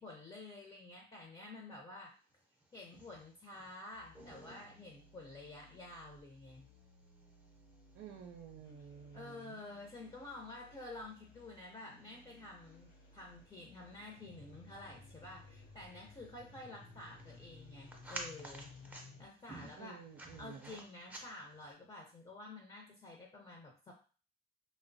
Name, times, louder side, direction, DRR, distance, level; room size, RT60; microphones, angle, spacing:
voice 1, 0.0-2.1 2.7-6.7 9.1-20.0 20.4-23.9, left 2 dB, 25° left, 0 dB, 0.7 m, -50 dB
sound 1, 2.3-21.7, right 1 dB, 10° right, 0.6 m, -56 dB
sound 2, 3.9-19.3, left 3 dB, 85° left, 0.5 m, -59 dB
voice 2, 7.9-9.6 19.8-20.8, right 7 dB, 65° right, 2 dB, 0.5 m, -52 dB
3.0 x 2.1 x 2.6 m, 0.38 s
cardioid pair, 90°, 20 cm